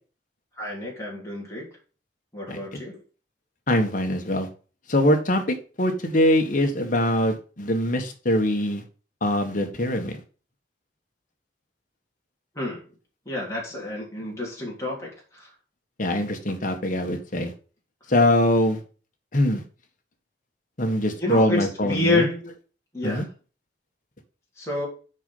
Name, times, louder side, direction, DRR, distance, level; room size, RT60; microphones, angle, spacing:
voice 1, 0.6-1.7 2.3-3.0 12.5-12.8 13.2-15.5 21.2-22.4 22.9-23.3 24.6-24.9, left 2 dB, 15° left, -5 dB, 3.3 m, -28 dB
voice 2, 2.5-2.8 3.7-4.5 4.9-8.8 9.2-10.1 16.0-17.5 18.1-18.8 19.3-19.6 20.8-22.3 23.0-23.2, left 1 dB, 50° left, 4 dB, 1.5 m, -23 dB
6.2 x 5.4 x 5.4 m, 0.36 s
head